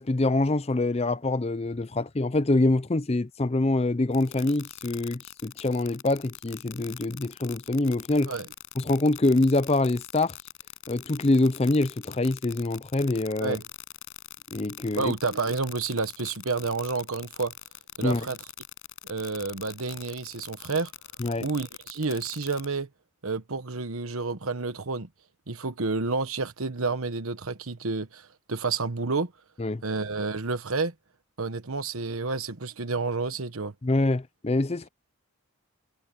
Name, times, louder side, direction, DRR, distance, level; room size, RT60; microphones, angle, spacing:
voice 1, 0.0-8.3 8.8-10.3 10.9-13.6 14.5-15.1 18.0-18.3 21.2-21.5 29.6-29.8 33.8-34.9, left 2 dB, 30° left, 0.5 m, -25 dB
sound 1, 4.1-22.7, left 12 dB, 65° left, 6.0 m, -43 dB
voice 2, 15.0-17.5 18.0-18.4 19.0-20.9 21.4-22.9 23.2-25.1 25.5-29.3 29.8-30.9 31.4-33.7, right 4 dB, 75° right, 1.1 m, -30 dB
head